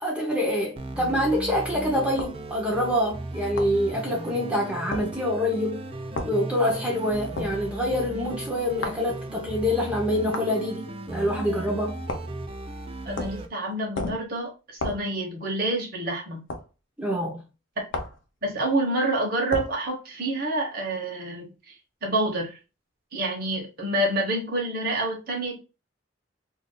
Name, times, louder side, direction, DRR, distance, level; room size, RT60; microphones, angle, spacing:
voice 1, 0.0-5.9 6.2-12.0 17.0-17.4, left 1 dB, 5° right, 0.7 m, -26 dB
sound 1, 0.8-13.5, right 2 dB, 30° right, 0.4 m, -36 dB
sound 2, 2.2-2.4 3.6-3.8 4.9-5.1 6.1-6.4 7.4-7.6 8.8-9.0 10.3-10.5 12.1-12.4 13.2-13.5 13.9-14.3 14.8-15.1 16.5-16.7 17.9-18.2 19.5-19.8, left 2 dB, 70° left, 0.6 m, -32 dB
voice 2, 13.0-16.4 18.4-21.7 22.0-22.6 23.1-25.6, right 1 dB, 50° right, 1.0 m, -28 dB
2.5 x 2.4 x 3.6 m
head